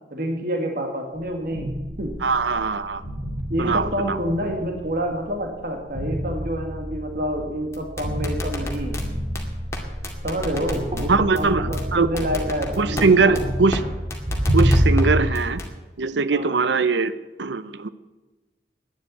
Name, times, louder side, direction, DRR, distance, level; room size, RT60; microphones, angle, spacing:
voice 1, 0.1-1.7 2.0-2.1 3.5-9.0 10.2-13.4 16.3-16.6, equal, 50° right, 3 dB, 2.0 m, -28 dB
sound 1, 1.2-15.2, equal, 35° right, 2.5 m, -27 dB
voice 2, 2.2-3.0 3.6-4.2 11.1-12.1 12.8-13.8 14.5-15.6 16.0-17.1 17.4-17.9, right 4 dB, 80° right, 14 dB, 0.7 m, -21 dB
sound 2, 7.7-9.0 9.3-9.4 9.7-9.8 10.0-11.0 11.3-11.4 11.7-11.8 12.2-13.0 13.3-13.4 13.7-13.8 14.1-15.0 15.3-15.7, left 1 dB, 15° left, 2.2 m, -30 dB
11.5 x 10.0 x 8.5 m, 1.2 s
head